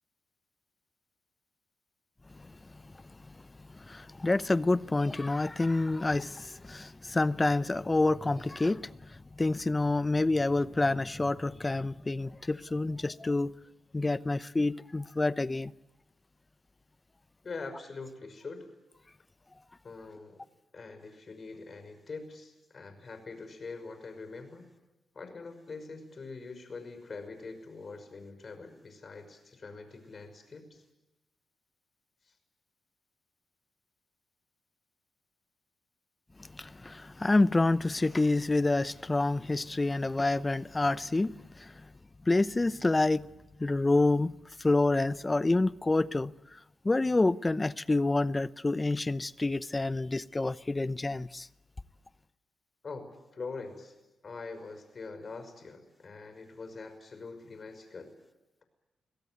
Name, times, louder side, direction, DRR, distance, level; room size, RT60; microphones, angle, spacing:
voice 1, 3.9-8.9 9.4-13.5 13.9-15.7 36.5-41.7 42.3-43.3 43.6-44.3 44.6-46.3 46.8-51.5, left 2 dB, 25° left, 0.8 m, -28 dB
voice 2, 17.4-18.7 19.8-20.4 20.7-24.6 25.1-30.8 32.3-32.4 52.8-53.9 54.2-58.1, left 4 dB, 50° left, 5.7 m, -44 dB
24.5 x 17.5 x 9.5 m
supercardioid pair, 50°, 0 cm